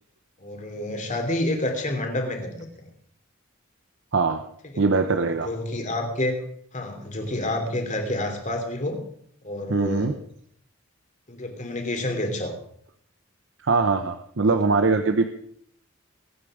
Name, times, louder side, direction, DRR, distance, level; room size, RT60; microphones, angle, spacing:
voice 1, 0.4-2.9 5.1-6.4 6.7-9.0 9.4-10.1 11.3-12.6, left 1 dB, 40° left, 4 dB, 3.1 m, -29 dB
voice 2, 4.1-4.4 4.8-5.5 9.7-10.1 13.6-15.3, right 4 dB, 65° right, 7 dB, 0.9 m, -22 dB
23.0 x 9.0 x 5.0 m, 0.65 s
head